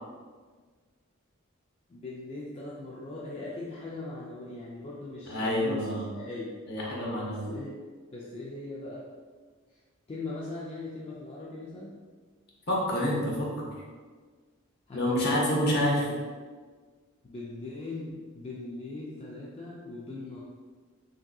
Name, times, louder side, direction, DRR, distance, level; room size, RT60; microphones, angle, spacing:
voice 1, 1.9-6.6 7.2-7.8 8.1-9.1 10.1-12.0 14.9-15.3 15.5-15.6 16.0-16.2 17.2-20.4, left 2 dB, 30° left, -6 dB, 0.3 m, -40 dB
voice 2, 5.3-6.1 6.7-7.5 12.7-13.7 14.9-16.1, left 1 dB, 50° left, -4 dB, 0.8 m, -28 dB
3.5 x 2.7 x 2.3 m, 1.5 s
head